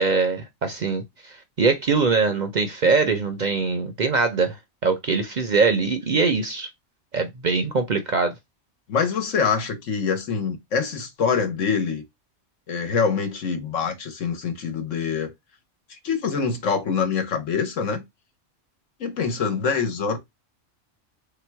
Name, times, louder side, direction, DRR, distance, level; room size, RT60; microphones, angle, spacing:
voice 1, 0.0-4.6 4.8-6.7 7.1-8.3, right 4 dB, 50° right, 0.6 m, -22 dB
voice 2, 8.9-12.0 12.7-15.3 16.0-18.0 19.0-20.2, left 6 dB, 85° left, 1.4 m, -25 dB
3.5 x 2.9 x 4.5 m
omnidirectional pair, 1.3 m